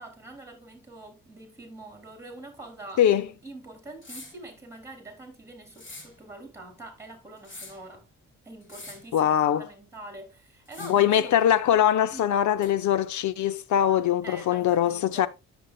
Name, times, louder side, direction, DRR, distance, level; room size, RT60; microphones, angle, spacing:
voice 1, 0.0-8.1 8.4-11.5 12.1-12.3 14.2-15.3, right 2 dB, 10° right, 3.4 m, -45 dB
sound 1, 4.0-4.4 5.7-6.1 7.4-7.9 8.6-9.1 10.7-11.1 12.6-12.7, left 2 dB, 40° left, 2.9 m, -44 dB
voice 2, 9.1-9.7 10.8-15.3, left 10 dB, 70° left, 0.8 m, -22 dB
10.0 x 7.1 x 2.4 m
cardioid pair, 90°, 30 cm